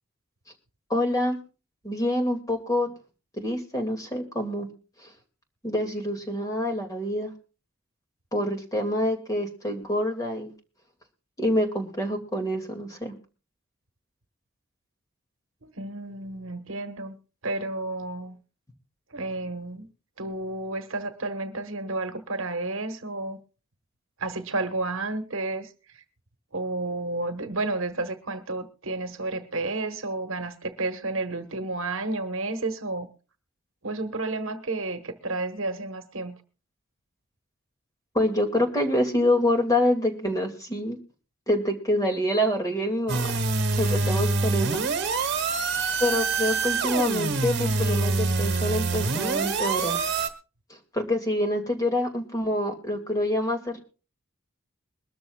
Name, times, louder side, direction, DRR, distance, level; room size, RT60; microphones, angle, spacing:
voice 1, 0.9-1.4 1.8-2.9 3.4-4.7 5.6-7.3 8.3-10.5 11.4-13.1 38.1-41.0 41.5-43.4 43.8-44.9 46.0-50.0 50.7-53.8, left 1 dB, 15° left, 4 dB, 2.1 m, -26 dB
voice 2, 15.6-17.1 17.4-18.4 19.1-19.9 20.2-23.4 24.2-25.7 26.5-33.1 33.8-36.4, right 2 dB, 70° right, 9 dB, 1.2 m, -31 dB
sound 1, 43.1-50.3, right 3 dB, 55° right, 1.3 m, -25 dB
22.5 x 13.0 x 2.3 m, 0.34 s
head